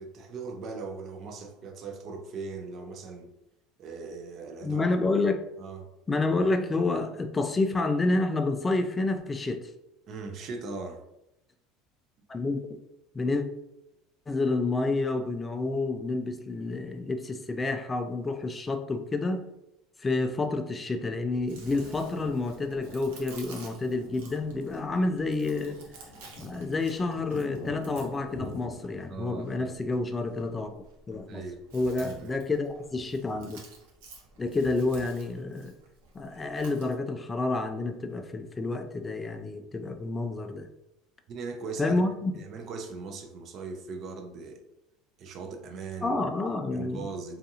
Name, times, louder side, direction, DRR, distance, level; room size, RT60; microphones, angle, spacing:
voice 1, 0.0-3.3 3.8-4.9 5.6-5.9 10.1-11.0 29.1-29.7 31.3-31.6 32.0-32.4 41.3-42.0 42.4-44.6 45.2-46.2 46.7-47.4, right 4 dB, 45° right, 4 dB, 0.5 m, -39 dB
voice 2, 4.6-5.4 6.1-9.7 12.3-12.6 13.1-13.5 14.3-19.5 20.0-25.8 26.4-30.7 31.1-31.4 31.7-33.6 34.4-35.7 36.1-40.7 41.8-42.3 46.0-47.1, left 3 dB, 15° left, 7 dB, 0.3 m, -29 dB
Chewing mastication, 21.2-36.9, right 4 dB, 90° right, 0.7 m, -52 dB
sound 1, 21.7-28.8, left 2 dB, 50° left, 0.8 m, -46 dB
2.6 x 2.4 x 2.7 m, 0.87 s
supercardioid pair, 130°, 0 cm